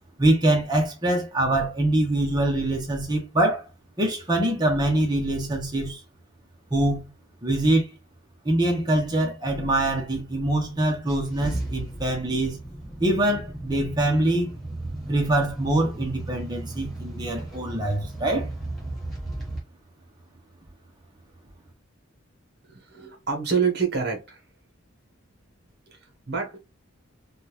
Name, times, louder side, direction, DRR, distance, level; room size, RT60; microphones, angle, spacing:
voice 1, 0.2-3.6 4.0-6.0 6.7-7.1 7.4-7.9 8.4-12.6 13.0-14.5 15.1-18.5, right 1 dB, 20° right, 0.8 m, -24 dB
sound 1, 11.1-19.6, right 1 dB, ahead, 1.1 m, -35 dB
voice 2, 22.6-24.4 25.9-26.0 26.3-26.6, right 5 dB, 50° right, 1.0 m, -27 dB
3.6 x 2.3 x 2.9 m
head